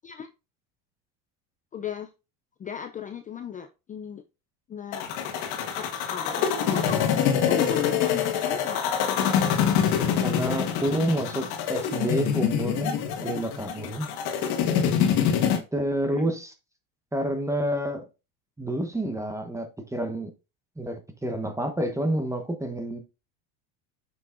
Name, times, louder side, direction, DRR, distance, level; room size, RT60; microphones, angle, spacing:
voice 1, 1.7-2.1 2.6-4.2 4.7-5.1 5.5-6.4 6.7-7.1 7.5-9.0 16.1-16.2, left 8 dB, 20° left, 0.4 m, -36 dB
sound 1, 4.9-15.6, left 8 dB, 60° left, 1.6 m, -25 dB
voice 2, 10.2-14.1 15.7-16.5 17.1-18.0 18.6-20.3 20.8-23.0, right 1 dB, 5° right, 1.1 m, -29 dB
7.5 x 6.0 x 2.5 m
supercardioid pair, 115°, 44 cm